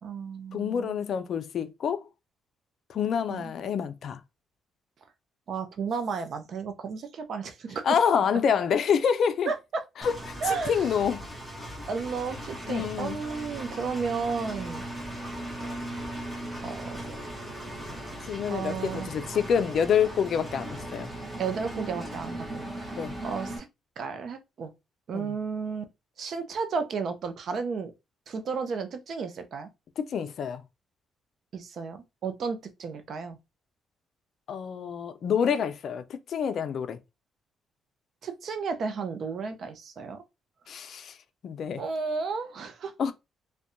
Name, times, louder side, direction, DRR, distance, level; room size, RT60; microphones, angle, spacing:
voice 1, 0.0-1.0 3.3-3.5 5.5-7.8 9.5-9.8 10.4-10.9 11.9-14.9 16.6-17.0 18.5-19.1 21.4-22.9 23.2-23.7 24.0-24.7 25.1-25.8 26.2-27.9 28.3-29.7 31.5-33.4 38.2-40.2 41.8-42.9, right 5 dB, 60° right, 0.5 m, -33 dB
voice 2, 0.5-2.1 2.9-4.2 7.8-9.5 10.0-10.1 10.5-11.2 11.6-11.8 12.7-13.2 18.2-20.7 20.9-21.1 23.0-23.2 25.1-25.3 30.0-30.6 34.5-37.0 40.7-41.2 41.4-41.8 43.0-43.1, left 7 dB, 60° left, 0.3 m, -27 dB
Engine, 10.0-23.6, right 1 dB, 15° right, 0.9 m, -38 dB
2.6 x 2.1 x 2.5 m
cardioid pair, 90°, 0 cm